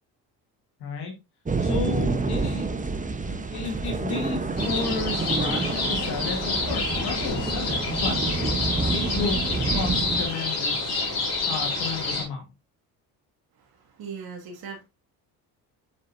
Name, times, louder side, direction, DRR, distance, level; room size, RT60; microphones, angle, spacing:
voice 1, 0.8-1.1 1.6-2.7 3.2-8.5 8.9-9.4 9.7-11.0 11.5-12.4, left 5 dB, 65° left, 2.1 m, -33 dB
sound 1, 1.4-10.3, right 3 dB, 20° right, 1.2 m, -28 dB
sound 2, 4.6-12.2, left 3 dB, 40° left, 4.2 m, -28 dB
voice 2, 13.5-14.8, right 5 dB, 60° right, 2.5 m, -39 dB
7.4 x 6.4 x 2.8 m
cardioid pair, 85°, 41 cm